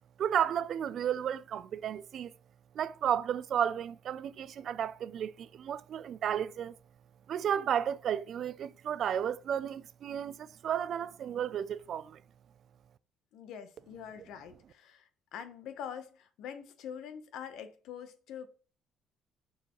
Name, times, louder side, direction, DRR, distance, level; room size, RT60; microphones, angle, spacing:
voice 1, 0.2-2.3 2.7-6.7 7.3-12.2, right 9 dB, 50° right, 0.3 m, -33 dB
voice 2, 13.3-18.5, left 8 dB, 70° left, 0.9 m, -44 dB
6.9 x 4.7 x 3.0 m
cardioid pair, 135°, 0 cm